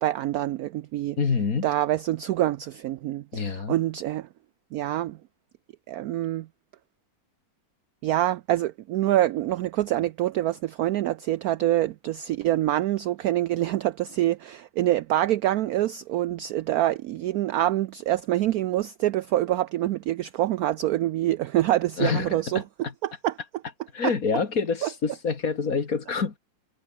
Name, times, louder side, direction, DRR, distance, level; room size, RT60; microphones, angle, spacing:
voice 1, 0.0-1.2 1.6-4.3 4.7-5.2 5.9-6.5 8.0-22.6 23.0-23.3 24.0-24.1 24.8-24.9, right 14 dB, 75° right, 0.8 m, -26 dB
voice 2, 1.2-1.7 3.3-3.8 22.0-22.9 23.9-26.4, left 5 dB, 50° left, 2.4 m, -27 dB
omnidirectional pair, 2.0 m